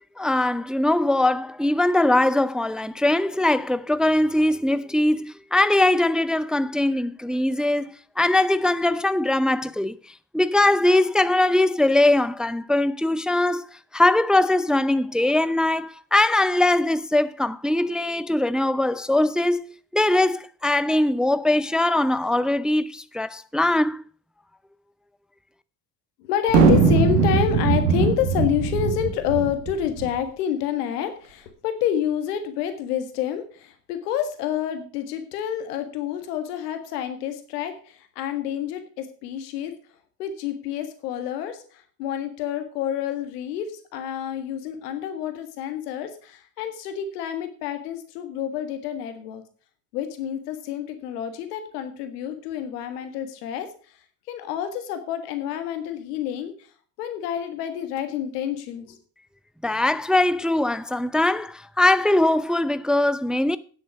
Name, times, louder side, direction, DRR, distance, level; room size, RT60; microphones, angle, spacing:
voice 1, 0.0-10.0 10.3-13.7 13.9-19.6 19.9-24.0 59.6-63.6, left 1 dB, ahead, 0.6 m, -21 dB
voice 2, 26.2-39.7 40.2-49.4 49.9-53.7 54.3-56.5 57.0-59.0, left 10 dB, 85° left, 1.7 m, -28 dB
sound 1, 26.5-30.1, right 5 dB, 90° right, 1.9 m, -20 dB
9.9 x 7.7 x 5.9 m
hypercardioid pair, 55°, 46 cm